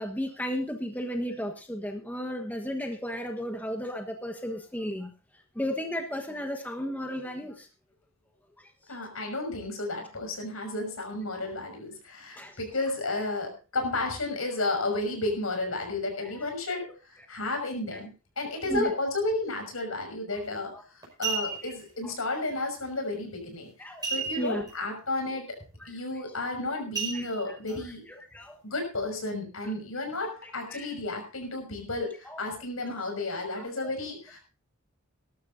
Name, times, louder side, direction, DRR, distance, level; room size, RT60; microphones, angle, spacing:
voice 1, 0.0-5.1 5.5-7.7 12.4-12.6 16.2-16.3 18.5-18.9 20.7-20.8 21.6-21.7 22.0-22.1 23.8-24.6 25.3-25.4 25.8-25.9 27.1-27.3 28.3-28.6 30.7-30.8 32.2-32.4 32.9-33.0 33.6-33.7, equal, 10° left, 3 dB, 1.3 m, -34 dB
voice 2, 8.9-16.8 17.3-18.1 18.4-23.7 24.1-25.6 25.9-28.0 28.6-34.4, left 2 dB, 85° left, 4 dB, 6.1 m, -32 dB
sound 1, 20.4-20.6 21.0-21.8 24.0-24.7 25.0-25.1 25.6-25.9 26.9-27.7 28.3-28.4, right 5 dB, 20° right, 5.2 m, -33 dB
20.0 x 12.5 x 2.7 m, 0.32 s
head